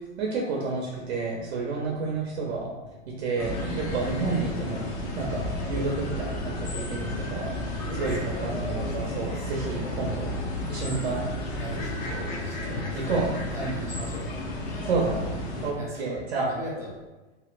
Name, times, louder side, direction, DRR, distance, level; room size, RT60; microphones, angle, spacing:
voice 1, 0.2-2.7 3.1-4.9 5.2-10.3 10.7-11.3 12.9-13.8 14.9-16.5, right 3 dB, 65° right, -2 dB, 0.8 m, -30 dB
sound 1, 0.7-12.3, equal, 65° left, 1.0 m, -49 dB
sound 2, 3.4-15.7, left 1 dB, 35° left, 0.6 m, -32 dB
voice 2, 7.8-8.5 8.8-9.9 11.6-13.2 13.5-14.3 15.8-17.0, equal, 10° right, -5 dB, 0.4 m, -40 dB
2.9 x 2.7 x 2.5 m, 1.2 s
hypercardioid pair, 140°, 35 cm